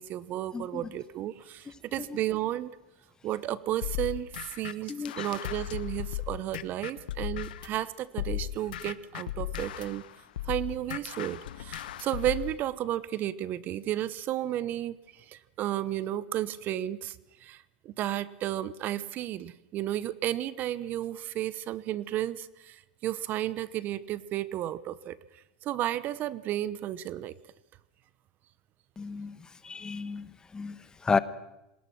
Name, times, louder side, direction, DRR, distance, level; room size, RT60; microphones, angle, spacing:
voice 1, 0.0-2.7 3.2-10.0 10.4-27.3, right 13 dB, 40° right, 0.9 m, -33 dB
sound 1, 3.8-7.8 8.2-12.5, left 13 dB, 85° left, 1.2 m, -36 dB
voice 2, 4.9-5.2 29.0-31.2, left 5 dB, 15° left, 1.2 m, -32 dB
26.5 x 20.0 x 6.1 m
supercardioid pair, 125°, 5 cm